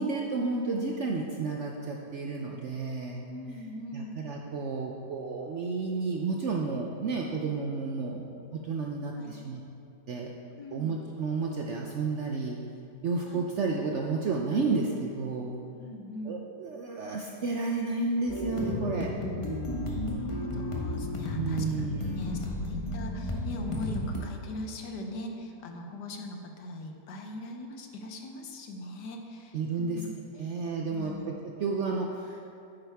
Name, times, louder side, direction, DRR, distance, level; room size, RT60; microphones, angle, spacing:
voice 1, 0.0-3.2 3.9-9.6 10.1-10.3 10.7-12.6 13.0-15.5 16.2-19.1 21.3-22.7 29.5-30.1 30.4-32.4, right 4 dB, 65° right, 0 dB, 0.7 m, -31 dB
voice 2, 3.3-4.2 9.1-9.3 10.5-10.9 13.2-13.4 15.8-16.4 19.8-30.1 30.4-30.5 30.9-31.3, left 1 dB, 75° left, 3 dB, 1.4 m, -41 dB
sound 1, 18.3-24.2, left 1 dB, 25° left, 0.9 m, -33 dB
9.2 x 8.9 x 3.4 m, 2.5 s
omnidirectional pair, 1.8 m